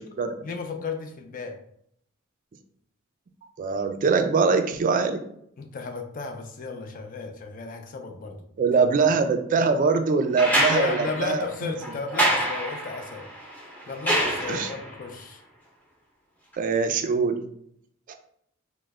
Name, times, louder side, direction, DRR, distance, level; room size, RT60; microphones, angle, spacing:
voice 1, 0.4-1.6 5.6-8.4 10.7-13.3 13.9-15.4, left 4 dB, 40° left, 4 dB, 0.4 m, -34 dB
voice 2, 3.6-5.2 8.6-11.7 14.5-14.7 16.6-17.4 18.1-18.2, right 4 dB, 40° right, 7 dB, 0.3 m, -23 dB
sound 1, 10.4-15.0 16.5-16.6, right 1 dB, 10° left, 0.8 m, -27 dB
3.1 x 2.1 x 3.4 m, 0.71 s
head